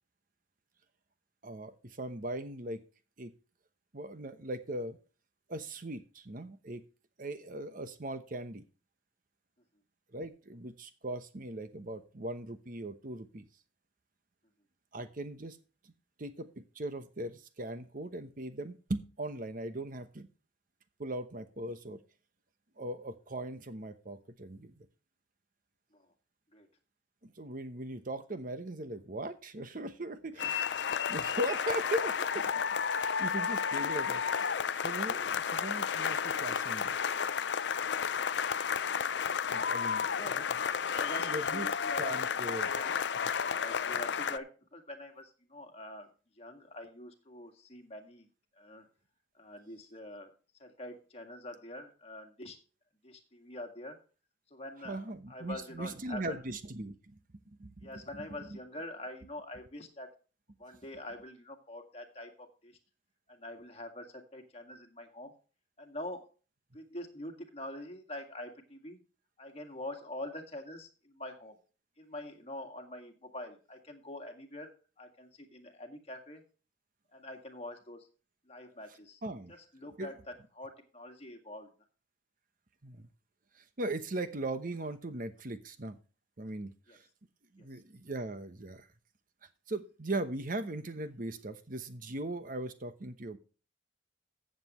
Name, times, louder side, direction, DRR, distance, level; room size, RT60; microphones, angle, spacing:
voice 1, 1.4-2.8 3.2-3.3 3.9-5.0 5.5-6.8 7.2-8.6 10.1-13.5 14.9-15.6 15.8-15.9 16.2-20.3 21.0-22.0 22.8-24.9 27.2-30.6 31.1-32.6 32.9-37.0 39.5-40.5 41.2-41.7 42.0-42.7 54.8-57.2 57.5-58.6 79.2-79.5 80.0-80.1 82.8-83.1 83.5-86.0 86.4-87.1 87.5-88.9 89.7-93.4, right 1 dB, 45° right, 10 dB, 1.0 m, -39 dB
voice 2, 30.3-31.0 40.1-40.5 40.9-42.2 42.6-42.9 43.5-46.1 46.4-48.3 48.6-48.9 49.3-50.3 50.6-52.6 53.0-54.0 54.5-56.4 57.8-60.1 60.6-62.8 63.3-65.3 65.8-66.3 66.7-69.0 69.4-71.6 72.0-74.7 75.0-76.4 77.1-78.1 78.5-79.2 79.5-80.2 80.5-81.7 86.9-87.0 87.6-87.8, left 1 dB, 35° left, 4 dB, 2.0 m, -45 dB
sound 1, 30.4-44.4, left 7 dB, 65° left, 0.5 m, -32 dB
15.0 x 7.8 x 3.1 m, 0.36 s
head